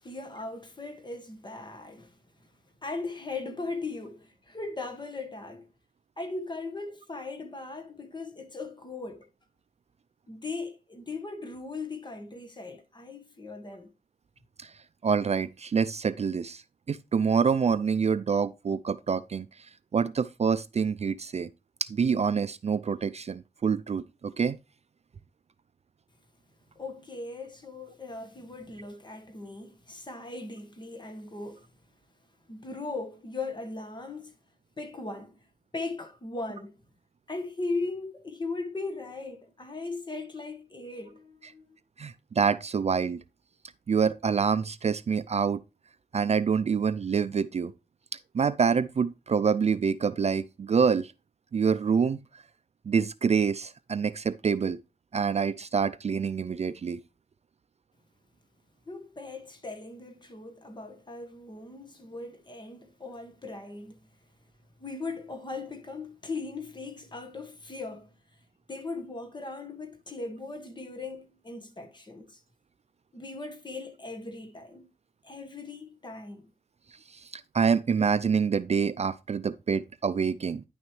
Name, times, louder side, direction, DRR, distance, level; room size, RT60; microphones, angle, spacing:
voice 1, 0.0-2.2 2.8-5.7 6.2-9.3 10.3-13.9 26.7-31.7 32.5-34.3 34.8-35.4 35.7-36.8 37.3-41.8 58.9-64.0 64.8-68.1 68.7-72.4 73.1-74.9 75.2-76.4, left 3 dB, 30° left, 1.4 m, -38 dB
voice 2, 15.0-16.6 16.9-19.5 19.9-21.5 21.8-24.6 42.0-43.2 43.9-45.6 46.1-47.7 48.3-51.1 51.5-52.2 52.9-54.8 55.1-57.0 77.1-80.6, right 6 dB, 45° right, 0.4 m, -26 dB
10.0 x 6.2 x 3.1 m
wide cardioid pair, 125°, 16 cm